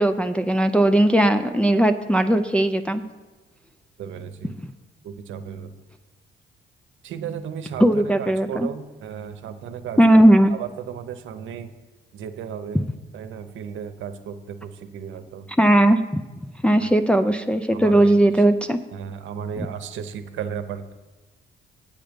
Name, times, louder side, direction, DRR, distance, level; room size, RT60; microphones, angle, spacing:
voice 1, 0.0-3.0 7.8-8.7 10.0-10.5 15.6-18.8, right 1 dB, 5° left, 6 dB, 0.4 m, -18 dB
voice 2, 4.0-4.6 5.0-5.7 7.0-10.2 10.5-11.7 12.1-12.8 13.1-15.5 16.8-16.9 17.7-18.1 18.9-20.9, right 7 dB, 75° right, 10 dB, 0.8 m, -34 dB
8.7 x 7.6 x 5.1 m, 1.2 s
cardioid pair, 90°, 20 cm